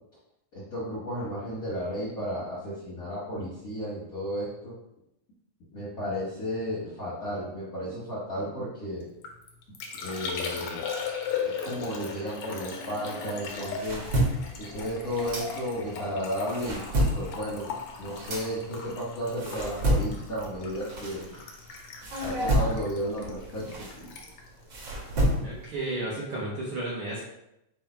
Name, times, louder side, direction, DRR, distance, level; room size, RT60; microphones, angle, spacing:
voice 1, 0.5-4.7 5.7-9.1 9.9-10.9 11.4-14.0 14.6-16.9 17.1-17.7 18.0-21.3 22.2-24.1, equal, 70° left, -8 dB, 0.8 m, -33 dB
Liquid, 9.0-25.6 25.9-26.4, left 5 dB, 90° left, 1.2 m, -38 dB
sound 1, 13.4-16.0 16.3-21.6 22.0-25.8, equal, 55° right, 1.4 m, -30 dB
voice 2, 25.4-27.2, right 2 dB, 75° right, -6 dB, 1.2 m, -33 dB
5.5 x 2.2 x 4.3 m, 0.85 s
omnidirectional pair, 3.4 m